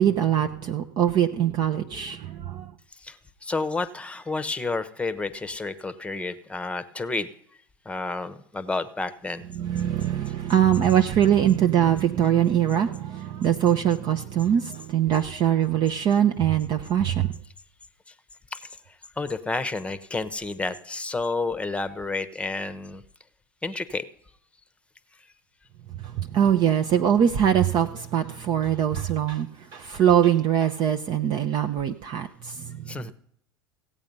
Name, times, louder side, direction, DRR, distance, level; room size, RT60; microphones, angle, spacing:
voice 1, 0.0-2.7 9.6-17.4 26.0-32.8, right 10 dB, 40° right, 0.7 m, -22 dB
voice 2, 2.9-7.3 7.8-9.4 10.3-10.4 18.1-18.2 18.5-23.0 23.6-24.0 32.9-33.1, left 3 dB, 10° left, 0.9 m, -30 dB
16.0 x 8.6 x 5.4 m
figure-of-eight pair, 80°, 12 cm